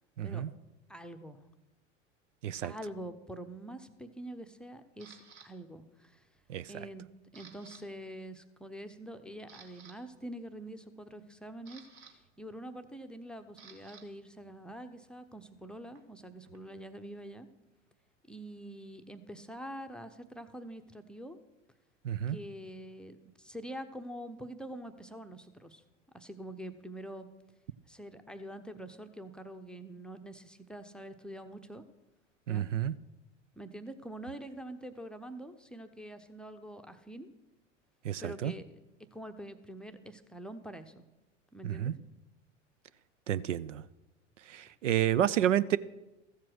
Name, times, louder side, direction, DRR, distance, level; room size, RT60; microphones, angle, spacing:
voice 1, 0.2-0.5 2.4-2.7 6.5-6.7 22.0-22.4 32.5-32.9 38.0-38.5 41.6-41.9 43.3-43.8 44.5-45.8, right 11 dB, 75° right, 18 dB, 0.5 m, -30 dB
voice 2, 0.9-1.4 2.6-6.3 6.7-7.1 7.3-17.5 18.3-21.4 22.3-25.8 26.1-27.3 27.9-31.8 32.5-32.7 33.6-37.3 38.2-38.8 39.1-41.0 41.5-41.9, right 1 dB, ahead, 7 dB, 0.7 m, -45 dB
Camera, 5.0-5.5 6.1-6.4 6.7-7.8 8.1-8.3 8.8-8.9 9.3-10.0 11.1-14.0 14.3-16.9, right 6 dB, 55° right, 1.8 m, -56 dB
14.5 x 7.5 x 6.3 m, 1.0 s
figure-of-eight pair, 85°, 37 cm